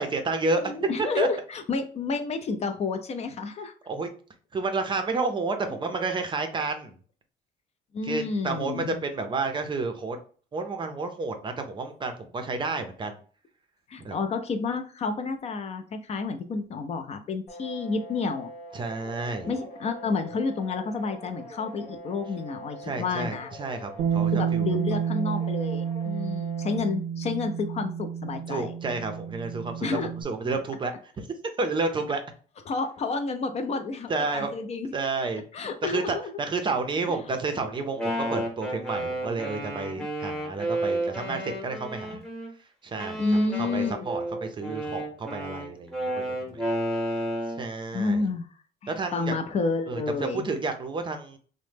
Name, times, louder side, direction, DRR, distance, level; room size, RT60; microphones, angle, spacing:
voice 1, 0.0-1.3 3.9-4.1 4.5-7.0 8.0-10.2 10.5-13.2 14.0-14.2 18.7-19.5 22.8-24.7 28.5-29.9 30.2-31.3 31.6-32.2 34.1-34.5 34.9-35.4 35.8-42.2 42.8-43.2 43.6-46.1 46.5-46.6 47.6-48.2 48.9-49.3 49.9-51.4, right 3 dB, 30° right, 6 dB, 0.5 m, -30 dB
voice 2, 0.6-3.7 7.9-9.0 13.9-18.5 19.5-23.5 24.3-28.8 29.8-30.1 32.7-34.9 35.5-36.3 37.1-37.2 40.0-40.1 41.3-41.4 42.1-42.2 43.2-43.9 47.9-48.5 48.8-50.5, left 4 dB, 40° left, 6 dB, 0.4 m, -30 dB
sound 1, 17.5-26.8, right 1 dB, 60° left, 0.9 m, -43 dB
Bass guitar, 24.0-30.2, right 8 dB, 85° right, 0.4 m, -30 dB
Wind instrument woodwind instrument, 37.8-42.5 43.0-47.7, right 1 dB, ahead, 0.8 m, -32 dB
3.0 x 2.1 x 3.3 m, 0.42 s
cardioid pair, 110°, 17 cm